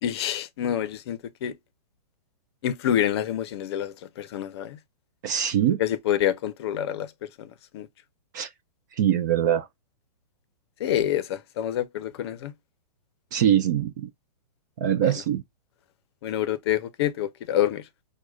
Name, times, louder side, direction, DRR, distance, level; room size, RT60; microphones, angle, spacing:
voice 1, 0.0-1.6 2.6-4.8 5.8-7.1 7.4-7.9 10.8-12.5 15.0-15.2 16.2-17.9, left 11 dB, 40° left, 0.6 m, -27 dB
voice 2, 5.2-5.8 8.3-8.5 9.0-9.7 13.3-14.1 14.8-15.4, right 10 dB, 30° right, 0.3 m, -23 dB
6.1 x 2.2 x 2.3 m
hypercardioid pair, 160°, 21 cm